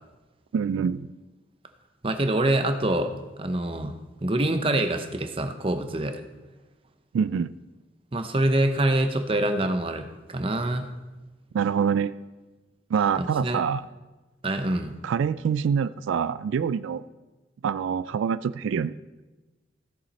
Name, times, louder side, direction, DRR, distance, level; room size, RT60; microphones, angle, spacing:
voice 1, 0.5-1.1 7.1-7.5 11.5-12.1 12.9-13.9 15.0-17.0 17.6-19.0, right 7 dB, 90° right, 15 dB, 0.3 m, -25 dB
voice 2, 2.0-3.1 3.4-3.9 4.2-6.2 8.1-10.9 13.2-13.6 14.4-14.9, right 1 dB, 30° right, 7 dB, 0.7 m, -25 dB
15.5 x 7.1 x 4.1 m, 1.2 s
head